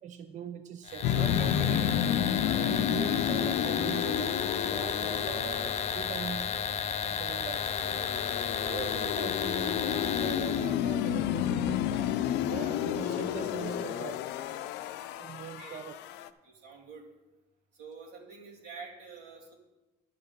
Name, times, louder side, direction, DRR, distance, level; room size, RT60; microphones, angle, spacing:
voice 1, 0.0-2.0 2.5-4.4 4.7-6.5 7.0-8.0 8.6-11.8 12.5-14.2 15.2-16.0, right 8 dB, 45° right, 8 dB, 0.6 m, -41 dB
sound 1, 0.9-10.7, left 7 dB, 40° left, 0.7 m, -33 dB
sound 2, 1.0-16.3, left 10 dB, 90° left, 0.5 m, -31 dB
voice 2, 16.4-17.0 17.7-19.5, right 5 dB, 85° right, -3 dB, 2.8 m, -47 dB
11.0 x 6.5 x 5.3 m, 1.1 s
cardioid pair, 110°, 17 cm